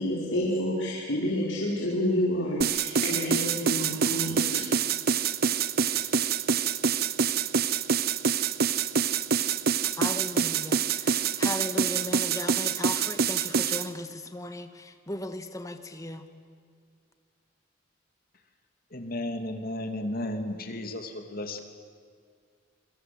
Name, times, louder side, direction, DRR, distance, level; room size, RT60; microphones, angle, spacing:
voice 1, 0.0-4.7 6.0-6.1, left 1 dB, 80° left, -5 dB, 5.2 m, -29 dB
sound 1, 2.6-13.9, right 6 dB, 50° right, 0.9 m, -26 dB
voice 2, 10.0-14.7 15.1-16.2, left 1 dB, 15° left, 8 dB, 1.8 m, -36 dB
voice 3, 18.9-21.6, left 1 dB, 50° left, 5 dB, 3.0 m, -33 dB
27.5 x 26.0 x 8.0 m, 2.1 s
head